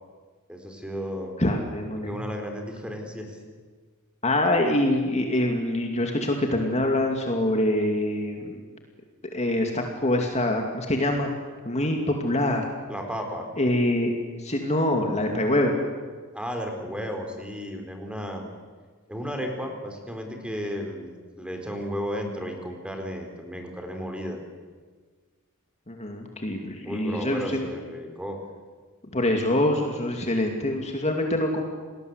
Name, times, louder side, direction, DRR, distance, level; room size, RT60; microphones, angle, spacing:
voice 1, 0.5-1.3 2.0-3.4 12.9-13.5 16.3-18.4 19.1-24.4 26.8-28.4, equal, 5° right, 3 dB, 4.2 m, -34 dB
voice 2, 1.4-2.2 4.2-8.6 9.3-11.3 11.6-12.7 13.6-14.1 14.4-15.8 25.9-27.7 29.1-31.6, left 1 dB, 30° left, 3 dB, 2.5 m, -25 dB
29.5 x 19.5 x 8.2 m, 1.5 s
head